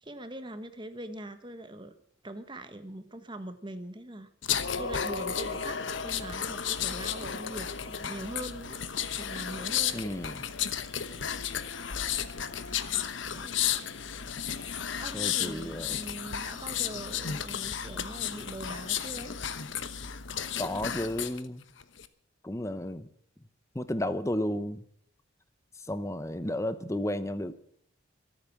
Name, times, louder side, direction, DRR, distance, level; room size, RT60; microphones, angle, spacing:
voice 1, 0.0-2.0 2.2-4.3 4.7-8.8 9.2-10.0 12.4-12.9 13.3-13.6 14.6-19.4, right 1 dB, 25° right, 9 dB, 1.3 m, -42 dB
sound 1, 4.4-21.4 21.8-22.1, left 8 dB, 70° left, 1.1 m, -33 dB
voice 2, 9.9-10.5 13.3-13.4 15.1-16.0 20.6-21.6 22.4-23.1 23.7-24.8 25.9-27.6, left 1 dB, 15° left, 12 dB, 0.8 m, -33 dB
24.0 x 8.9 x 6.0 m, 0.65 s
head